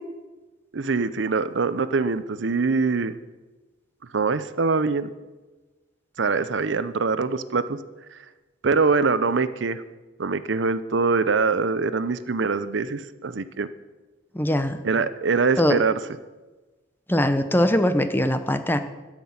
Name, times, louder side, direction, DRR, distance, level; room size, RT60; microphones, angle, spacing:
voice 1, 0.7-3.2 4.1-5.1 6.2-7.8 8.1-8.2 8.6-9.8 10.2-13.7 14.8-16.0, right 4 dB, 65° right, 14 dB, 0.6 m, -23 dB
voice 2, 14.3-14.8 15.6-15.8 17.1-18.8, left 1 dB, 10° left, 10 dB, 0.7 m, -21 dB
12.5 x 6.2 x 8.5 m, 1.2 s
head